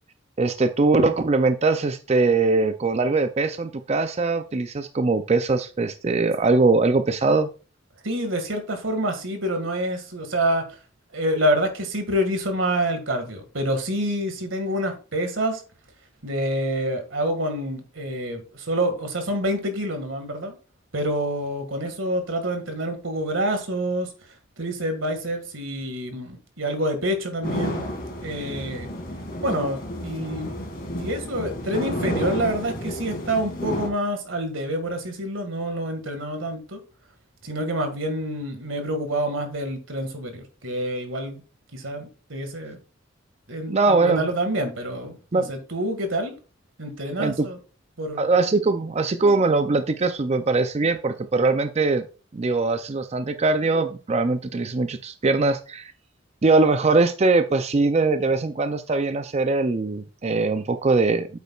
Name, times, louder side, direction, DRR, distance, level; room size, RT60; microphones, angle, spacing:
voice 1, 0.4-7.5 43.7-44.3 45.3-45.5 47.2-47.5 48.2-52.0 52.3-55.9 56.4-61.3, right 3 dB, 35° right, 0.5 m, -21 dB
voice 2, 8.0-10.6 11.1-15.6 16.2-20.6 20.9-24.1 24.6-27.9 28.2-28.9 29.4-30.5 31.0-36.8 37.4-41.4 41.7-42.8 43.5-46.3 46.8-47.6 48.0-48.3, right 1 dB, 85° right, 2.0 m, -27 dB
sound 1, 27.4-33.9, equal, 50° left, 2.7 m, -31 dB
8.7 x 8.2 x 2.4 m
head